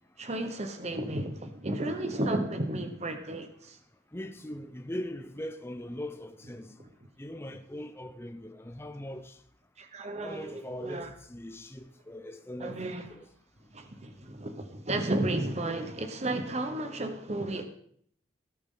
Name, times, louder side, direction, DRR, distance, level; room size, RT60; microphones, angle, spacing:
voice 1, 0.2-3.8 9.8-11.1 12.6-13.1 13.7-17.6, right 1 dB, 35° right, 1.1 m, -33 dB
voice 2, 4.1-6.7 7.2-9.4 10.2-13.3, left 1 dB, 15° left, 0.6 m, -40 dB
17.0 x 8.8 x 3.8 m
head